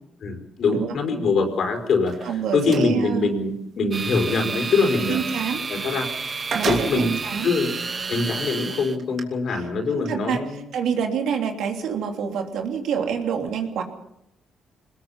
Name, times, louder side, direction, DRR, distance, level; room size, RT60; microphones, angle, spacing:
voice 1, 0.2-5.2 5.7-6.1 6.6-7.1 7.4-7.7 8.1-10.6, left 4 dB, 60° left, 4 dB, 4.7 m, -23 dB
sound 1, 2.0-2.9 5.8-5.9 6.2-7.3 7.9-8.0 9.0-9.2, right 5 dB, 60° right, 3.0 m, -30 dB
voice 2, 2.2-3.3 5.1-5.6 6.5-7.5 9.5-9.6 9.9-10.4 10.7-13.8, right 7 dB, 80° right, 4 dB, 3.2 m, -27 dB
sound 2, 3.9-9.0, right 4 dB, 35° right, 1.5 m, -31 dB
23.0 x 20.5 x 5.7 m, 0.80 s
cardioid pair, 90°, 0 cm